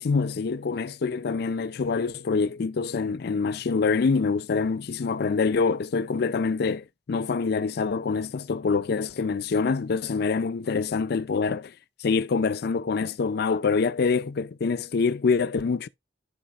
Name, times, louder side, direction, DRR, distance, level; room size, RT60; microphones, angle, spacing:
voice 1, 0.0-11.7 12.0-15.9, left 4 dB, 60° left, 0.4 m, -25 dB
14.5 x 4.9 x 2.4 m
head